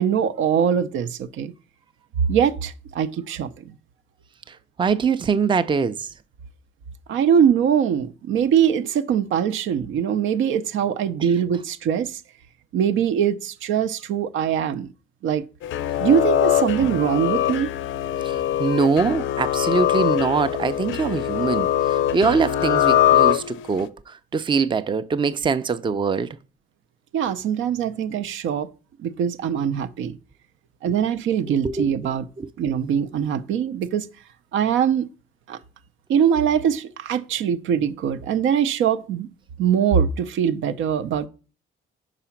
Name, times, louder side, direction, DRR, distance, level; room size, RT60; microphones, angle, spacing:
voice 1, 0.0-1.5 2.3-3.8 7.1-12.2 12.7-14.9 15.2-15.5 16.0-17.7 27.1-28.7 29.0-30.2 30.8-32.3 32.6-34.1 34.5-35.1 35.5-35.6 36.1-39.3 39.6-41.3, right 8 dB, 80° right, 0.6 m, -22 dB
voice 2, 4.8-6.1 18.2-23.9 24.3-26.4 31.5-31.9, right 5 dB, 25° right, 0.5 m, -23 dB
sound 1, 15.6-23.8, left 11 dB, 75° left, 0.5 m, -22 dB
4.9 x 4.9 x 5.7 m
cardioid pair, 90°, 20 cm